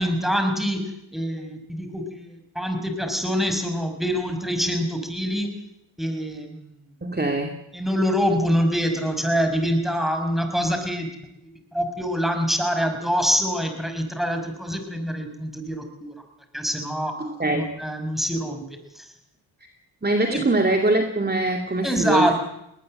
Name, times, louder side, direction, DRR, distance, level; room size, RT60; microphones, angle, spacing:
voice 1, 0.0-5.5 6.0-6.8 7.7-11.1 11.7-16.1 16.5-17.2 17.5-19.1 20.3-20.5 21.8-22.3, equal, ahead, 5 dB, 5.7 m, -25 dB
voice 2, 7.0-7.5 17.2-17.7 20.0-22.3, right 2 dB, 20° right, 4 dB, 2.5 m, -23 dB
20.0 x 20.0 x 7.7 m, 0.81 s
cardioid pair, 65°, 49 cm